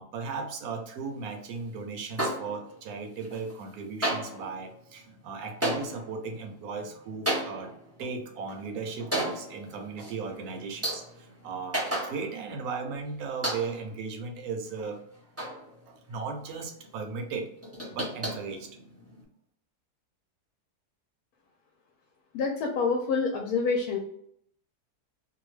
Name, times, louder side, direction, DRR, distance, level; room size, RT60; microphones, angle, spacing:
voice 1, 0.0-7.7 8.0-15.0 15.9-17.5 17.9-18.7, right 4 dB, 70° right, 4 dB, 1.1 m, -36 dB
Trash Can, 2.2-2.9 3.2-3.7 4.0-12.6 12.9-13.0 13.4-14.0 14.5-16.2 16.5-16.6 16.8-16.9 17.3-19.2, right 1 dB, 10° right, 0.7 m, -35 dB
voice 2, 22.3-24.0, left 4 dB, 70° left, 2 dB, 1.0 m, -27 dB
2.8 x 2.2 x 3.1 m, 0.68 s
omnidirectional pair, 1.7 m